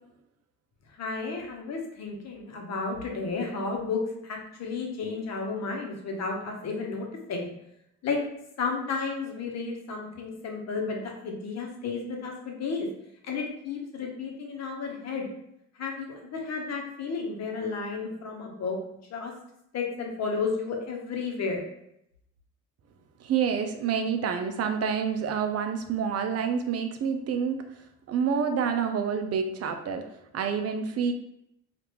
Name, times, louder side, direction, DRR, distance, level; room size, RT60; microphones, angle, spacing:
voice 1, 0.9-7.5 8.0-8.2 8.6-12.9 13.2-15.3 15.7-18.8 19.1-19.3 19.7-21.6, left 4 dB, 60° left, 1 dB, 0.9 m, -32 dB
voice 2, 23.2-27.6 28.1-30.0 30.3-31.1, right 6 dB, 55° right, 6 dB, 0.5 m, -28 dB
3.3 x 2.4 x 2.9 m, 0.79 s
cardioid pair, 90°, 30 cm